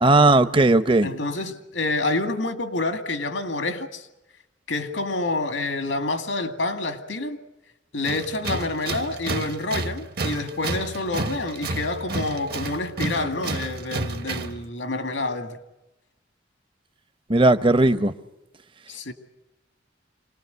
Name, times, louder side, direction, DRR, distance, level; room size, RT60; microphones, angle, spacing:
voice 1, 0.0-1.1 17.3-18.1, right 2 dB, 30° right, 0.8 m, -17 dB
voice 2, 1.0-4.1 4.7-7.4 7.9-15.6 18.9-19.1, left 2 dB, 85° left, 2.2 m, -28 dB
Tools, 8.0-14.6, right 2 dB, 55° right, 1.2 m, -31 dB
26.5 x 19.5 x 8.1 m
head